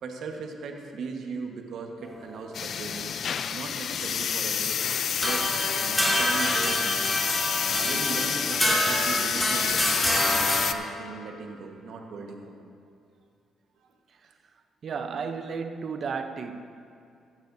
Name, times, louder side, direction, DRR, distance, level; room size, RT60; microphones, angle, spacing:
voice 1, 0.0-3.2 3.5-4.8 5.2-5.5 5.8-7.1 7.7-12.6 13.8-13.9, right 4 dB, 70° right, 2 dB, 1.4 m, -38 dB
sound 1, 2.5-10.7, left 7 dB, 60° left, 0.4 m, -28 dB
sound 2, 5.2-10.6, equal, 5° left, 2.5 m, -27 dB
voice 2, 14.8-16.6, right 5 dB, 55° right, 8 dB, 0.7 m, -33 dB
15.5 x 12.0 x 2.7 m, 2.5 s
cardioid pair, 90°, 0 cm